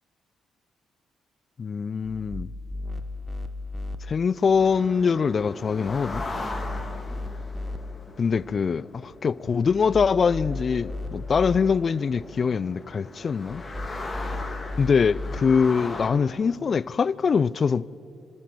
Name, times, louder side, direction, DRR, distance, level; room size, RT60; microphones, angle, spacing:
voice 1, 1.6-2.5 4.1-6.2 8.2-13.6 14.8-17.8, left 6 dB, 45° left, 0.4 m, -23 dB
sound 1, 2.0-4.0 5.9-7.8 9.7-11.6 13.5-15.4, left 2 dB, ahead, 1.2 m, -34 dB
sound 2, 4.6-16.1, left 2 dB, 20° left, 2.6 m, -39 dB
27.5 x 13.5 x 7.6 m
cardioid pair, 90°, 0 cm